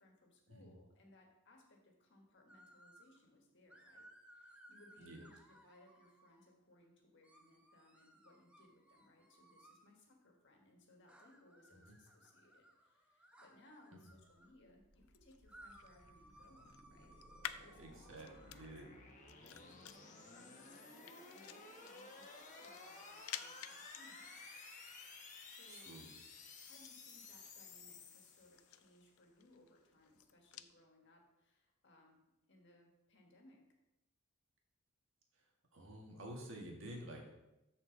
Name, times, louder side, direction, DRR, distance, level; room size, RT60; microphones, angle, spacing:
voice 1, 0.0-17.2 17.6-18.0 18.3-18.7 19.4-24.4 25.4-25.9 26.6-32.2 32.5-33.6, left 1 dB, 55° left, 1 dB, 1.7 m, -66 dB
sound 1, 2.5-3.2 3.7-6.5 7.2-9.9 11.1-14.5 15.5-18.7, right 1 dB, 5° right, 0.9 m, -63 dB
sound 2, 14.5-28.9, left 3 dB, 35° left, 1.1 m, -56 dB
sound 3, 14.9-30.8, left 10 dB, 85° left, 0.4 m, -55 dB
voice 2, 17.8-18.9 25.7-26.1 35.7-37.3, right 1 dB, 65° right, 0 dB, 1.8 m, -50 dB
13.0 x 4.5 x 4.0 m, 0.93 s
head